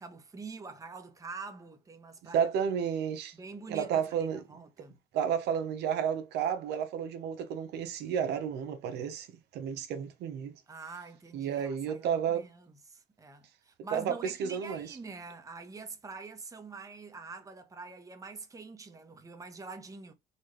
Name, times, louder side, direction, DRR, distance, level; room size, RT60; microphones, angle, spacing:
voice 1, 0.0-2.7 3.3-5.0 10.7-20.1, right 4 dB, 20° right, 1.0 m, -46 dB
voice 2, 2.3-3.3 3.7-4.4 5.1-9.3 9.5-10.5 11.3-12.5 13.9-15.0, right 8 dB, 80° right, 1.0 m, -31 dB
4.1 x 2.5 x 3.2 m
cardioid pair, 110°, 17 cm